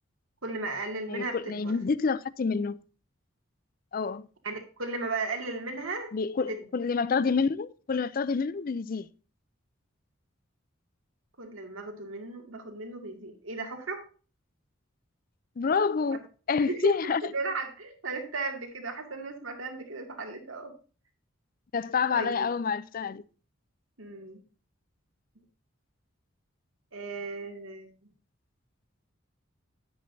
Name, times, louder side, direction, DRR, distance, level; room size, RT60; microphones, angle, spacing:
voice 1, 0.4-1.8 4.4-6.1 6.5-6.6 11.4-14.0 16.7-20.7 22.1-22.5 24.0-24.4 26.9-27.9, right 3 dB, 85° right, 2.3 m, -35 dB
voice 2, 1.1-2.8 3.9-4.3 6.1-9.1 15.6-16.2 16.5-17.2 21.7-23.2, left 5 dB, 45° left, 0.4 m, -28 dB
10.5 x 9.6 x 2.7 m
head